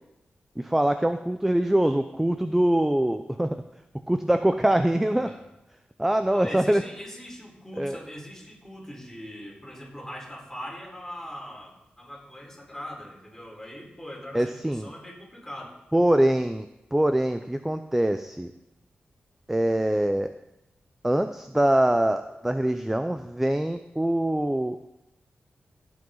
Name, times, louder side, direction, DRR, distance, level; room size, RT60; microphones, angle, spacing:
voice 1, 0.6-3.6 4.1-5.3 6.0-6.8 7.8-8.0 14.3-14.9 15.9-18.5 19.5-20.3 21.0-24.8, right 1 dB, 10° right, 9 dB, 0.5 m, -24 dB
voice 2, 6.3-15.8, equal, 10° left, -3 dB, 4.1 m, -41 dB
17.5 x 7.8 x 3.9 m, 0.88 s
wide cardioid pair, 80°, 3 cm